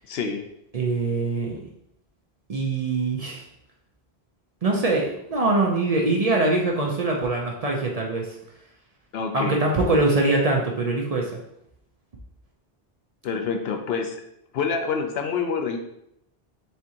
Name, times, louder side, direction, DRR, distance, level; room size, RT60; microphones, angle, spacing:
voice 1, 0.1-0.4 9.1-9.6 13.2-14.2 14.5-15.8, left 5 dB, 75° left, 5 dB, 0.8 m, -27 dB
voice 2, 0.7-1.6 2.5-3.4 4.6-8.3 9.3-11.3, right 2 dB, 45° right, -1 dB, 0.6 m, -23 dB
4.4 x 3.6 x 2.8 m, 0.77 s
omnidirectional pair, 1.1 m